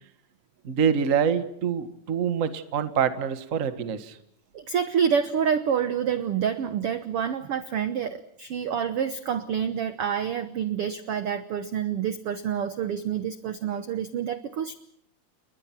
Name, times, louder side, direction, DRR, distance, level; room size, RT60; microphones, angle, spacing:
voice 1, 0.6-4.2, right 7 dB, 45° right, 10 dB, 1.0 m, -25 dB
voice 2, 4.5-14.7, right 8 dB, 70° right, 11 dB, 1.3 m, -27 dB
30.0 x 22.0 x 6.0 m, 0.69 s
omnidirectional pair, 4.0 m